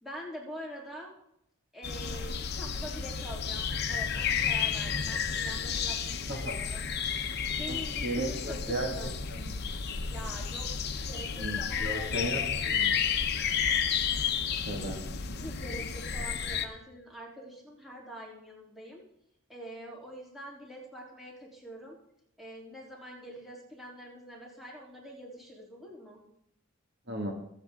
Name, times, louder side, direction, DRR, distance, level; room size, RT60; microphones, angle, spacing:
voice 1, 0.0-1.1 1.7-6.9 7.5-9.1 10.1-10.7 11.0-12.3 14.8-14.9 15.3-19.0 19.5-22.0 22.4-26.2, equal, ahead, -4 dB, 3.4 m, -45 dB
sound 1, 1.8-16.7, left 7 dB, 50° left, 0.9 m, -32 dB
voice 2, 7.7-9.5 11.3-12.9 14.7-15.0 27.1-27.3, right 1 dB, 50° right, 1 dB, 2.2 m, -35 dB
23.5 x 8.2 x 3.8 m, 0.75 s
head